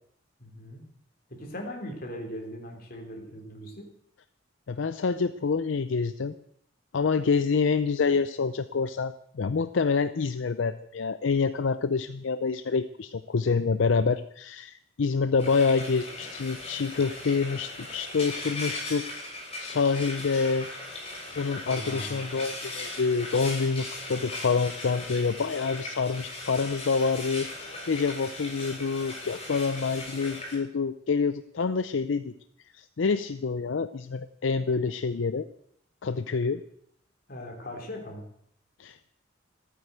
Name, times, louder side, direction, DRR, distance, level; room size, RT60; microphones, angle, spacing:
voice 1, 0.4-0.8 1.3-3.9 21.6-22.4 37.3-38.2, equal, 50° left, 1 dB, 3.6 m, -39 dB
voice 2, 4.7-6.3 6.9-19.0 19.6-20.7 21.4-32.3 32.7-35.5 36.0-36.6 38.8-39.1, left 5 dB, 75° left, 12 dB, 0.5 m, -27 dB
Frying (food), 15.4-30.6, left 2 dB, 30° left, 6.4 m, -38 dB
14.5 x 9.3 x 8.0 m, 0.69 s
head